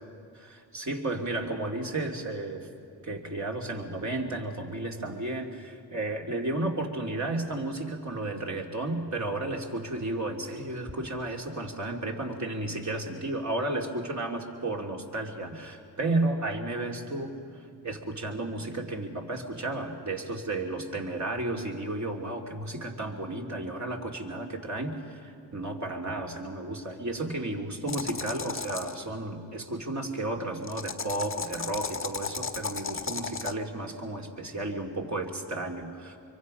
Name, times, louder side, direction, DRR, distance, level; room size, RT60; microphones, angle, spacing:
voice 1, 0.3-2.7 3.0-36.2, right 2 dB, 40° right, 1 dB, 3.1 m, -33 dB
sound 1, 27.9-28.9 30.6-33.5, left 5 dB, 30° left, 1.3 m, -35 dB
25.5 x 23.5 x 5.6 m, 2.5 s
cardioid pair, 60°, 45 cm